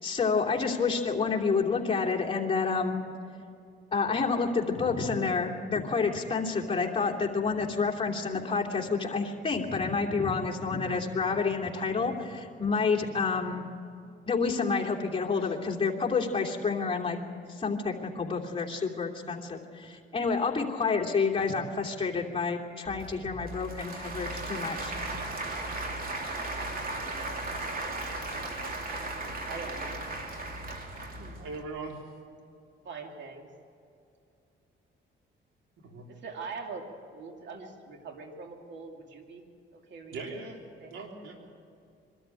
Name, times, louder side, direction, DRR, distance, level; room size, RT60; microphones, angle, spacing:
voice 1, 0.0-3.0 3.9-13.7 14.3-17.2 17.5-24.9, left 4 dB, 25° left, -1 dB, 2.9 m, -29 dB
Applause / Crowd, 22.9-31.6, right 2 dB, 45° right, 2.8 m, -36 dB
voice 2, 29.4-30.0 31.1-31.4 32.8-33.5 36.1-39.5 39.7-40.2 40.8-40.9, right 4 dB, 65° right, 3 dB, 2.6 m, -42 dB
voice 3, 31.4-32.1 35.8-36.1 40.1-40.6 40.9-41.4, right 3 dB, 85° right, 1 dB, 3.5 m, -40 dB
23.0 x 13.0 x 9.1 m, 2.5 s
cardioid pair, 90°, 20 cm